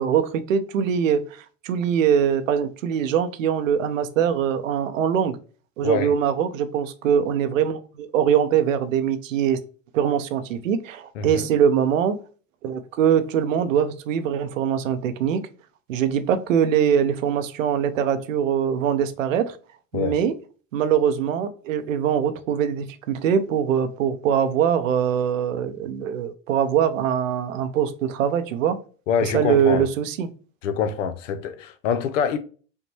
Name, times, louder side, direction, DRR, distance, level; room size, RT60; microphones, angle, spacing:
voice 1, 0.0-5.4 5.8-9.6 9.9-12.2 12.6-15.4 15.9-19.6 19.9-20.3 20.7-28.8 29.2-30.3, right 8 dB, 75° right, 0.6 m, -22 dB
voice 2, 5.8-6.1 11.2-11.5 19.9-20.2 29.1-29.8 30.6-32.4, left 7 dB, 70° left, 0.6 m, -25 dB
5.3 x 2.2 x 3.1 m
hypercardioid pair, 85°, 39 cm